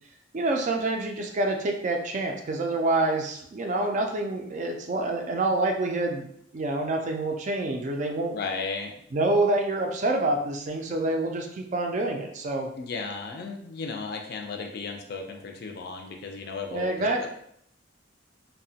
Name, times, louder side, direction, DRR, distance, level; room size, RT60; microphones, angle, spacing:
voice 1, 0.3-6.3 6.5-8.3 9.1-12.7 16.7-17.3, right 2 dB, 40° right, 2 dB, 0.3 m, -27 dB
voice 2, 8.3-8.9 12.8-17.3, left 4 dB, 55° left, 3 dB, 0.4 m, -35 dB
2.8 x 2.1 x 2.7 m, 0.70 s
head